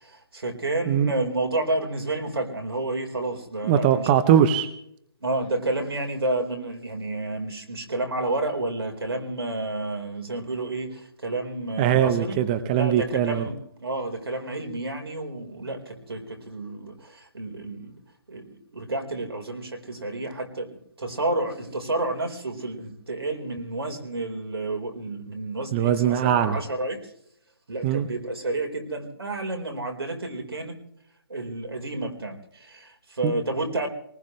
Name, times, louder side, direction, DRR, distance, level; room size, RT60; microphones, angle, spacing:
voice 1, 0.0-4.1 5.2-12.4 12.8-18.0 18.3-20.7 21.0-27.0 27.7-30.7 31.3-33.9, right 2 dB, 80° right, 4 dB, 4.6 m, -30 dB
voice 2, 3.6-4.7 11.8-13.5 25.7-26.6 27.8-28.1 33.2-33.3, right 10 dB, 25° right, 11 dB, 0.9 m, -21 dB
22.5 x 19.5 x 3.3 m, 0.70 s
hypercardioid pair, 155°, 12 cm